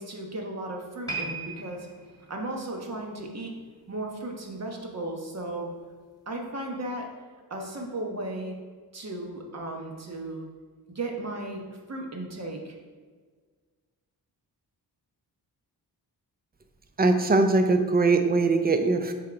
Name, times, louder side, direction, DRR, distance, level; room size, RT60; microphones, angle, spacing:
voice 1, 0.0-1.9 2.3-3.5 3.9-5.7 6.3-7.1 7.5-8.5 8.9-10.5 10.9-12.7, right 2 dB, 40° right, 1 dB, 1.1 m, -35 dB
sound 1, 1.1-4.4 4.7-4.9 5.6-5.7, right 3 dB, 10° left, 1.6 m, -39 dB
voice 2, 17.0-19.1, right 3 dB, 25° right, 7 dB, 0.5 m, -21 dB
6.6 x 3.9 x 4.5 m, 1.5 s
wide cardioid pair, 120°, 40 cm